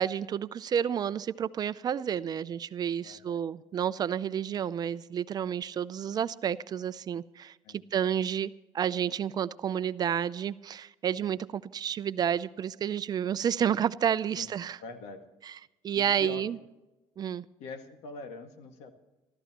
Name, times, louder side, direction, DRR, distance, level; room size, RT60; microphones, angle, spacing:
voice 1, 0.0-7.5 7.9-14.8 15.8-16.6 17.2-17.4, right 9 dB, 40° right, 0.5 m, -30 dB
voice 2, 3.0-3.4 7.6-7.8 14.4-14.5 14.8-15.3 15.9-16.4 17.6-18.9, left 4 dB, 80° left, 1.9 m, -43 dB
25.5 x 13.5 x 3.0 m
cardioid pair, 120°, 11 cm